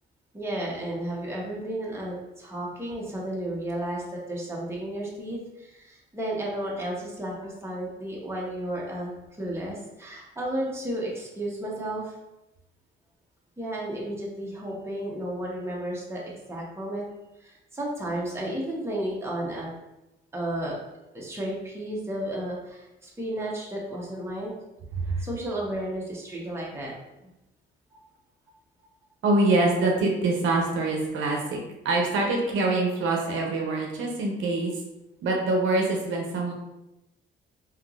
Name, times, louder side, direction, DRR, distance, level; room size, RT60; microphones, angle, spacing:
voice 1, 0.3-9.1 9.4-12.2 13.6-17.0 17.4-19.7 20.3-20.7 21.1-24.5 25.2-26.9 27.2-27.3 27.9-28.0, right 1 dB, 15° right, -4 dB, 1.0 m, -33 dB
voice 2, 29.2-31.6 31.8-34.8 35.2-36.5, right 2 dB, 75° right, 0 dB, 0.7 m, -25 dB
3.5 x 2.9 x 2.4 m, 0.95 s
cardioid pair, 90°, 20 cm